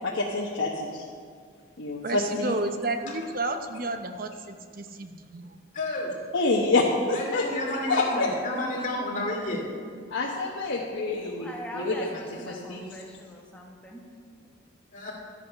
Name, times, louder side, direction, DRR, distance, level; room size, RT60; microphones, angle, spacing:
voice 1, 0.0-1.0 1.8-2.5 6.3-7.4 7.9-8.3 10.1-11.5 11.7-11.9 12.5-12.8, left 3 dB, 85° left, -3 dB, 1.2 m, -27 dB
voice 2, 2.0-5.6, right 2 dB, 45° right, 7 dB, 0.8 m, -32 dB
voice 3, 5.7-6.1 7.1-9.6 14.9-15.1, left 2 dB, 40° left, -2 dB, 2.5 m, -31 dB
voice 4, 11.2-14.0 14.4-14.5, equal, 5° left, -2 dB, 1.4 m, -42 dB
12.5 x 8.4 x 5.7 m, 2.1 s
head